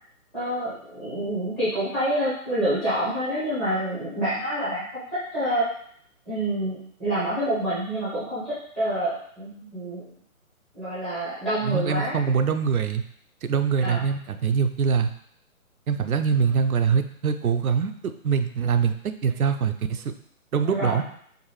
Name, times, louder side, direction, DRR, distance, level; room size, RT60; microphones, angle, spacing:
voice 1, 0.3-5.0 5.3-5.6 6.3-10.0 10.7-12.2 13.8-14.0 20.7-21.0, right 1 dB, ahead, -14 dB, 0.6 m, -27 dB
voice 2, 11.6-13.0 13.4-15.1 15.9-18.9 19.2-20.1 20.5-21.0, right 6 dB, 80° right, 8 dB, 0.6 m, -23 dB
4.7 x 2.6 x 3.2 m, 0.64 s
figure-of-eight pair, 145°, 43 cm